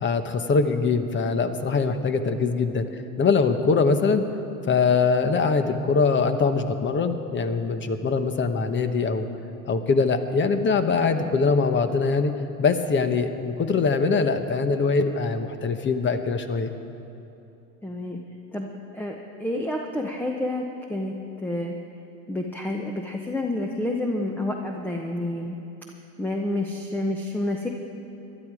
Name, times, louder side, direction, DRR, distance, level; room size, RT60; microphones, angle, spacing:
voice 1, 0.0-2.9 3.2-4.2 4.7-9.3 9.7-12.3 12.6-16.7, left 4 dB, 25° left, 9 dB, 1.0 m, -22 dB
voice 2, 17.8-18.2 18.5-21.7 22.3-25.6 26.2-27.7, left 1 dB, 5° left, 2 dB, 0.9 m, -29 dB
18.5 x 12.0 x 4.9 m, 2.8 s
hypercardioid pair, 100°, 44 cm